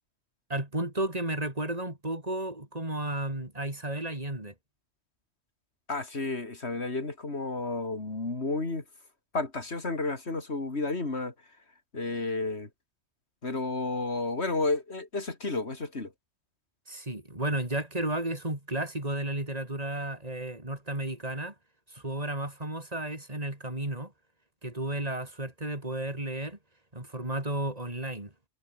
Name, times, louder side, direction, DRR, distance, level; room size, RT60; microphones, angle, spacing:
voice 1, 0.5-4.5 16.9-21.5 21.9-24.1 24.6-26.6 26.9-28.3, right 1 dB, 35° right, 4.9 m, -33 dB
voice 2, 5.9-8.8 9.3-11.3 11.9-12.7 13.4-16.1, left 3 dB, 80° left, 3.7 m, -31 dB
omnidirectional pair, 1.1 m